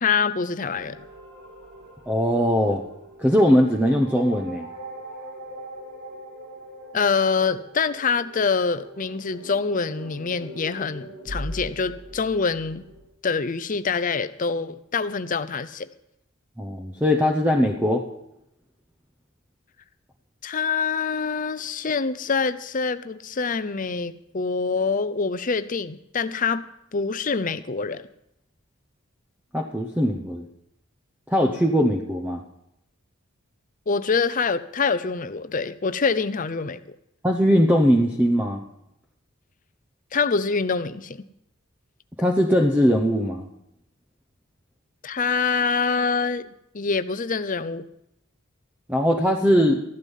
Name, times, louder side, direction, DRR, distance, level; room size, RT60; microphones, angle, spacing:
voice 1, 0.0-1.0 6.9-12.8 13.2-15.9 20.4-26.7 26.9-28.1 33.9-36.8 40.1-41.2 45.0-47.9, left 5 dB, 40° left, 13 dB, 0.6 m, -25 dB
sound 1, 0.8-13.0, equal, 60° right, 4.9 m, -41 dB
voice 2, 2.1-2.8 3.2-4.7 16.6-18.0 29.5-30.5 31.3-32.4 37.2-38.6 42.2-43.5 48.9-49.8, equal, 10° right, 2 dB, 0.9 m, -20 dB
14.0 x 11.5 x 5.5 m, 0.81 s
head